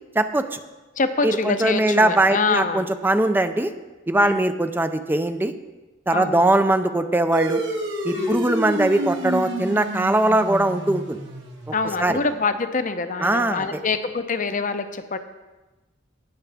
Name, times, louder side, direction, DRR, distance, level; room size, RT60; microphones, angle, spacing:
voice 1, 0.2-0.6 1.2-3.7 4.1-5.5 6.1-7.6 8.0-11.2 12.0-12.2 13.2-13.6, right 1 dB, 10° right, 9 dB, 0.4 m, -21 dB
voice 2, 1.0-2.9 4.1-4.5 6.1-6.4 8.1-8.4 11.7-15.2, left 4 dB, 40° left, 9 dB, 0.7 m, -25 dB
sound 1, 7.3-12.2, right 1 dB, 70° right, 1.8 m, -29 dB
18.0 x 6.9 x 3.5 m, 1.2 s
head